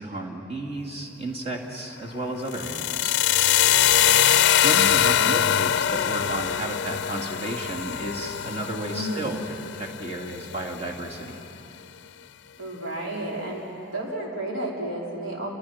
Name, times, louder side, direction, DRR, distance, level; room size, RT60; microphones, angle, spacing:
voice 1, 0.0-3.2 4.6-9.4 9.7-11.4, right 1 dB, 30° right, 0 dB, 2.6 m, -33 dB
sound 1, 2.5-10.5, left 10 dB, 55° left, 0.5 m, -22 dB
voice 2, 8.9-9.3 12.6-13.6 13.9-15.5, right 1 dB, 85° right, -3 dB, 5.3 m, -31 dB
29.5 x 25.0 x 5.9 m, 2.9 s
head